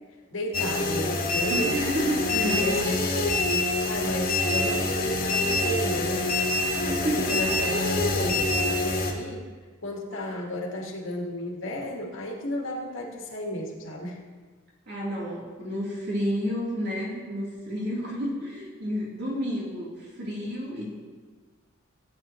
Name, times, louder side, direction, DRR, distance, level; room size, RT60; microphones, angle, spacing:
voice 1, 0.3-1.8 2.5-9.5 9.8-14.2, equal, 70° left, 0 dB, 1.7 m, -33 dB
sound 1, 0.5-9.1, left 2 dB, 45° left, 1.6 m, -26 dB
voice 2, 1.5-2.8 6.8-7.3 14.9-20.9, equal, 55° right, -5 dB, 3.4 m, -30 dB
17.0 x 8.7 x 3.1 m, 1.4 s
head